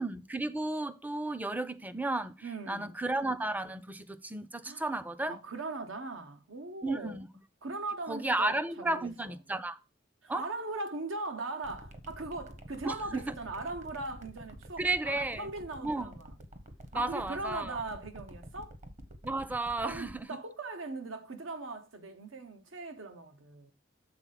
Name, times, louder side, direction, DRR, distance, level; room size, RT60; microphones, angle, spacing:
voice 1, 0.0-5.4 6.8-7.3 8.1-9.8 10.3-10.4 12.8-13.3 14.8-15.5 15.8-16.2 16.9-17.8 19.2-20.3, right 2 dB, 10° right, 0.4 m, -33 dB
voice 2, 2.4-3.0 4.6-4.8 5.2-7.2 7.6-9.4 10.2-16.3 16.9-18.8 19.8-23.7, right 2 dB, 90° right, 1.0 m, -40 dB
sound 1, 11.6-20.2, right 1 dB, 40° right, 0.9 m, -48 dB
7.0 x 3.8 x 5.7 m
head